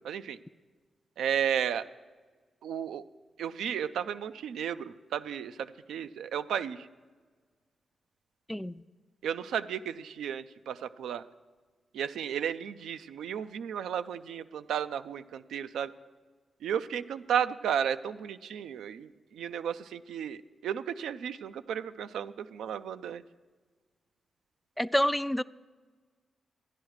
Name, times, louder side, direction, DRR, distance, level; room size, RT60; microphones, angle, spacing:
voice 1, 0.0-0.4 1.2-1.8 2.6-3.0 3.4-6.9 9.2-11.2 11.9-15.9 16.6-23.2, right 8 dB, 90° right, 11 dB, 0.4 m, -33 dB
voice 2, 8.5-8.8 24.8-25.4, equal, 10° left, 16 dB, 0.3 m, -28 dB
13.5 x 10.5 x 4.8 m, 1.4 s
cardioid pair, 55°, 0 cm